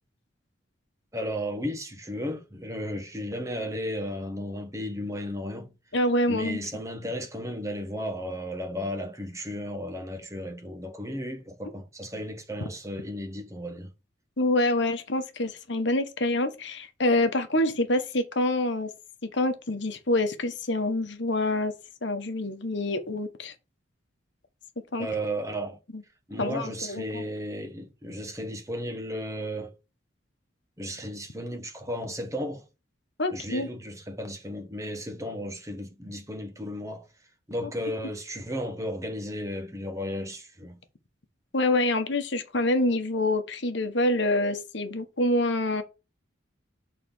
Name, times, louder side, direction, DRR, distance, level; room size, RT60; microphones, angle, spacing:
voice 1, 1.1-5.7 6.3-13.9 25.0-25.8 26.3-29.7 30.8-32.6 33.3-37.1 37.5-40.8, equal, 15° right, 1.4 m, -34 dB
voice 2, 5.9-6.6 14.4-18.9 19.3-21.7 22.0-23.5 24.9-25.1 25.9-26.0 26.4-27.2 33.2-33.7 41.5-45.8, left 1 dB, 60° left, 1.3 m, -26 dB
6.5 x 4.1 x 5.6 m
head